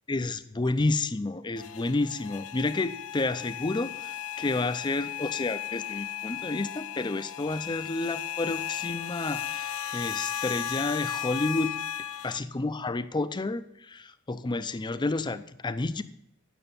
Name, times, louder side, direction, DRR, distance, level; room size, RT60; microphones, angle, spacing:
voice 1, 0.1-11.7 12.2-16.0, left 2 dB, 20° left, 13 dB, 0.5 m, -30 dB
sound 1, 1.6-12.4, left 11 dB, 65° left, 0.6 m, -35 dB
9.0 x 6.8 x 8.5 m, 0.77 s
head